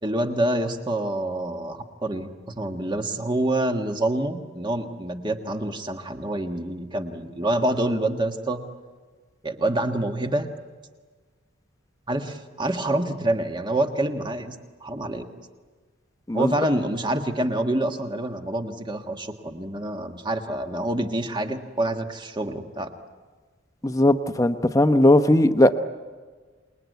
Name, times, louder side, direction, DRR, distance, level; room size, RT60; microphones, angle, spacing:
voice 1, 0.0-8.6 9.4-10.5 12.1-14.6 14.8-15.3 16.3-22.9, right 1 dB, 20° right, 5 dB, 1.6 m, -27 dB
voice 2, 23.8-25.8, left 1 dB, 15° left, 8 dB, 0.9 m, -18 dB
27.5 x 20.5 x 9.4 m, 1.4 s
head